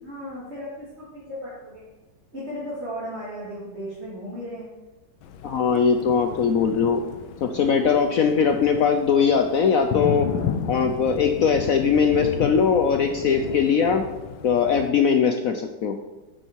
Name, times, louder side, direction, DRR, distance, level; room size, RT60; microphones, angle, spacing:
voice 1, 0.0-1.8 2.3-4.7 7.4-7.8, equal, 30° right, -9 dB, 3.5 m, -36 dB
Thunder, 5.2-14.9, left 8 dB, 90° left, 1.5 m, -33 dB
voice 2, 5.4-7.0 7.4-10.3 10.7-14.0 14.4-16.0, left 6 dB, 65° left, 6 dB, 0.8 m, -20 dB
8.9 x 8.8 x 4.6 m, 1.1 s
omnidirectional pair, 2.1 m